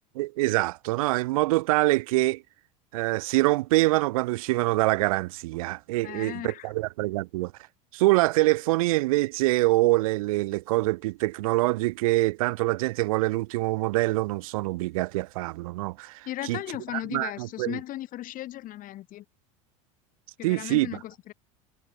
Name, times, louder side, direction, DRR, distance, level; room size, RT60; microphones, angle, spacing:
voice 1, 0.1-2.4 2.9-7.5 7.9-16.6 17.1-17.8 20.4-20.9, right 20 dB, 75° right, 1.0 m, -25 dB
voice 2, 6.0-6.7 16.2-19.2 20.4-21.3, left 14 dB, 50° left, 2.6 m, -36 dB
hypercardioid pair, 90°, 18 cm